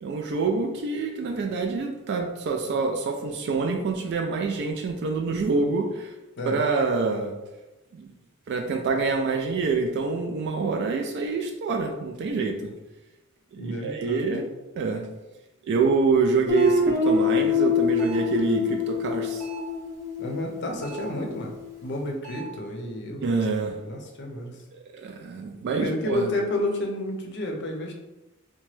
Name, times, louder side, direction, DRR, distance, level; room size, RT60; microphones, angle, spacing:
voice 1, 0.0-6.1 6.5-7.3 7.9-8.1 8.5-12.7 13.5-14.5 14.8-15.1 15.6-19.5 23.2-23.8 24.9-26.3, right 4 dB, 55° right, 3 dB, 0.3 m, -26 dB
voice 2, 13.6-14.4 20.2-21.5 21.8-23.2 23.8-24.6 25.8-27.9, left 1 dB, 55° left, 2 dB, 0.5 m, -30 dB
Guitar, 16.5-21.2, left 5 dB, 15° right, 0.8 m, -25 dB
sound 1, 16.6-16.9 18.0-18.4 19.4-19.8 20.8-21.2 22.2-22.6, right 5 dB, 90° right, 1.0 m, -41 dB
2.9 x 2.2 x 3.0 m, 1.0 s
head